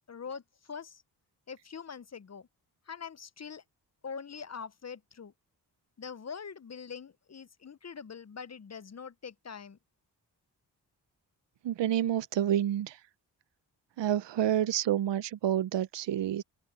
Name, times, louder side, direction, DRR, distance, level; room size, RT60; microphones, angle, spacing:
voice 1, 0.1-1.0 1.5-2.5 2.9-3.6 4.0-5.3 6.0-9.8, left 6 dB, 35° left, 0.9 m, -43 dB
voice 2, 11.6-13.0 14.0-16.4, right 11 dB, 75° right, 0.8 m, -28 dB
open air
supercardioid pair, 45°, 43 cm